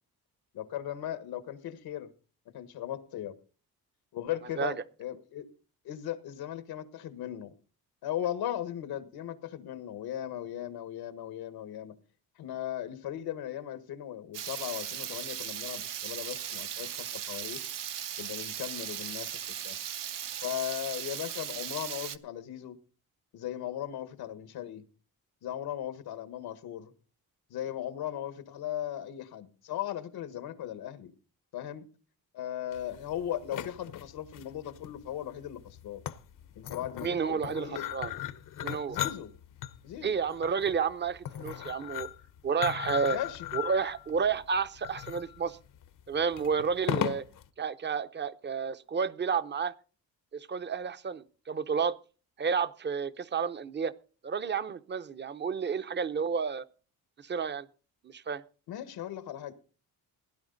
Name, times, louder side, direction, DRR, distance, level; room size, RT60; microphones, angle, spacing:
voice 1, 0.5-2.1 2.5-3.3 4.1-5.5 5.8-7.5 8.0-11.9 12.4-17.6 18.2-19.7 20.4-22.8 23.3-24.8 25.4-26.9 27.5-31.1 31.5-31.9 32.3-36.0 36.5-37.9 38.9-39.3 39.8-40.1 43.1-43.5 58.7-59.6, left 11 dB, 85° left, 1.5 m, -37 dB
Water tap faucet / Liquid, 14.3-22.2, right 10 dB, 60° right, 0.9 m, -38 dB
sound 1, 32.7-47.5, left 11 dB, 60° left, 0.9 m, -38 dB
voice 2, 37.0-38.1 38.6-39.0 40.0-42.1 42.4-43.2 43.5-45.6 46.1-47.2 47.6-49.7 50.3-52.0 52.4-53.9 54.2-56.6 57.2-57.7 58.0-58.4, right 6 dB, 30° right, 0.7 m, -31 dB
17.0 x 10.5 x 3.9 m
cardioid pair, 125°, 36 cm